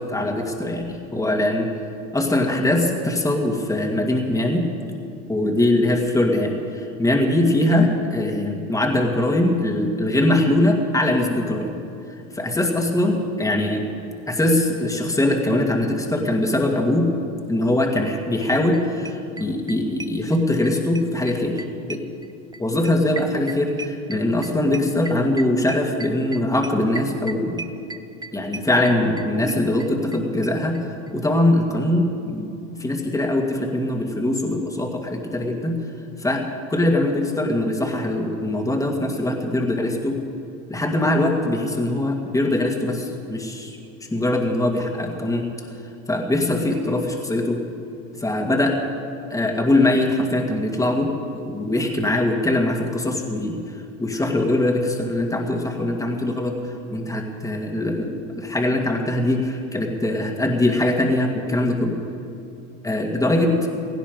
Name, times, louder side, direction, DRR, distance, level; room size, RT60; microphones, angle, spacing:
voice 1, 0.0-1.7 2.1-4.7 5.3-11.7 12.3-13.8 14.3-17.1 17.5-21.6 21.9-22.0 22.6-27.6 28.3-30.8 31.1-32.5 32.8-35.8 36.2-40.2 40.7-43.8 44.1-45.5 46.1-47.6 48.2-48.8 49.3-62.0 62.8-63.6, left 1 dB, 10° left, 1 dB, 2.1 m, -22 dB
sound 1, 18.4-18.5 18.7-18.8 19.0-20.7 20.9-30.2 30.4-30.5 30.7-30.8 31.1-31.2, right 3 dB, 10° right, 0.6 m, -35 dB
17.5 x 15.5 x 5.2 m, 2.6 s
supercardioid pair, 90°, 40 cm